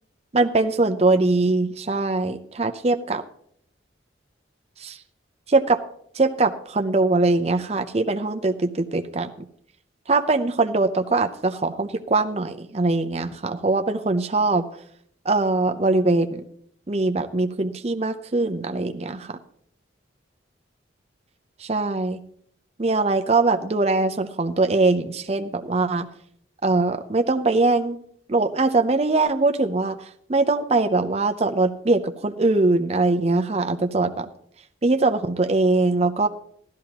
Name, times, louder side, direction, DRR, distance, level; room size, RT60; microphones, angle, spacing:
voice 1, 0.3-3.2 4.8-5.0 5.5-5.8 6.2-9.3 10.1-14.6 15.3-16.4 16.9-19.4 21.6-22.2 22.8-26.1 26.6-28.0 28.3-30.0 30.3-34.3 34.8-36.3, right 3 dB, 35° right, 7 dB, 0.6 m, -22 dB
15.0 x 12.5 x 2.9 m, 0.67 s
head